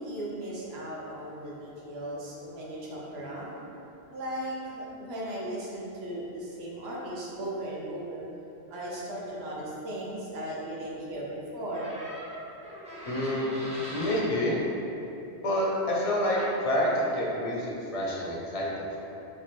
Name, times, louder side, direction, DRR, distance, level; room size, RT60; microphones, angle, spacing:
voice 1, 0.0-3.5 4.1-8.2 8.7-11.9, right 1 dB, 70° right, -5 dB, 1.0 m, -37 dB
sound 1, 11.7-14.3 16.3-16.5, equal, 10° right, 0.5 m, -41 dB
voice 2, 13.1-13.6 13.9-14.6 15.4-19.0, left 1 dB, 45° left, -4 dB, 0.5 m, -28 dB
4.2 x 2.3 x 3.0 m, 2.9 s
omnidirectional pair, 1.1 m